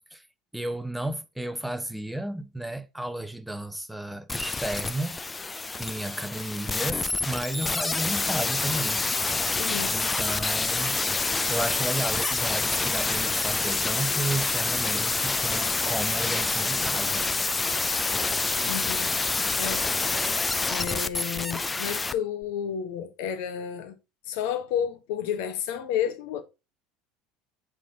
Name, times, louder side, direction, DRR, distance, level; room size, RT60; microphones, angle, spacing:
voice 1, 0.5-5.2 5.8-9.0 9.9-17.3 19.6-19.8, right 1 dB, 5° right, 0.8 m, -33 dB
sound 1, 4.3-22.1 22.4-22.5, left 3 dB, 15° left, 0.4 m, -27 dB
voice 2, 9.6-10.0 18.7-19.1 19.6-19.9 20.7-24.0 24.3-26.4, left 9 dB, 60° left, 1.0 m, -31 dB
7.5 x 3.6 x 4.0 m
figure-of-eight pair, 70°, 0 cm